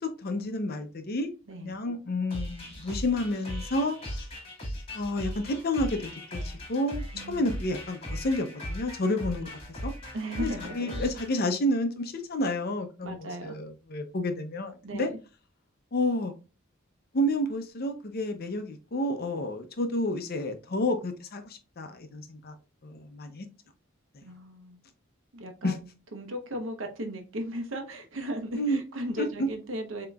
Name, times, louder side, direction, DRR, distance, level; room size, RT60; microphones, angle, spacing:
voice 1, 0.0-1.3 1.6-4.0 4.9-9.5 9.8-9.9 10.4-10.5 10.7-15.1 15.9-16.3 17.1-22.6 22.8-23.5 25.6-25.7 28.5-28.8 29.2-29.3, left 1 dB, 50° left, 0.6 m, -30 dB
voice 2, 1.5-1.9 7.1-7.7 10.1-11.1 13.0-13.6 14.8-15.2 24.2-24.8 25.3-30.1, right 1 dB, 70° right, 0.9 m, -37 dB
sound 1, 2.3-11.4, equal, 30° left, 1.9 m, -38 dB
7.3 x 2.9 x 2.3 m
head